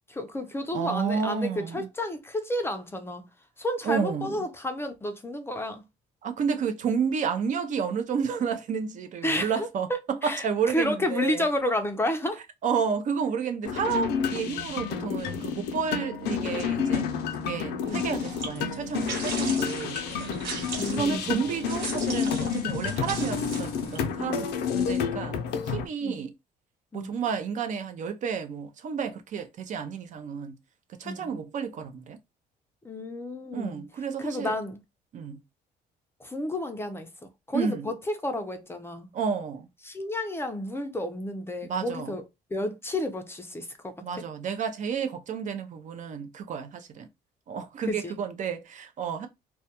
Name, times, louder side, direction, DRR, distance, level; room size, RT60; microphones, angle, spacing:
voice 1, 0.1-3.3 3.6-5.8 9.2-12.4 17.8-18.1 20.8-21.4 26.0-26.2 26.9-27.1 31.0-31.3 32.8-33.8 34.2-34.8 36.2-37.1 37.5-39.1 39.8-42.2 42.5-44.0 47.9-48.2, left 1 dB, 15° left, 0.4 m, -31 dB
voice 2, 0.7-1.9 3.8-4.4 6.2-11.4 12.6-17.1 17.4-20.0 20.9-25.4 25.7-26.3 26.9-30.5 31.0-32.2 33.5-34.5 35.1-35.4 37.5-37.9 39.1-39.7 41.6-42.2 44.0-47.1 47.5-49.3, right 6 dB, 45° right, 0.5 m, -31 dB
sound 1, 13.6-25.9, left 7 dB, 80° left, 0.5 m, -30 dB
sound 2, 17.8-24.0, right 4 dB, 75° right, 1.1 m, -38 dB
2.2 x 2.1 x 2.8 m
cardioid pair, 110°, 17 cm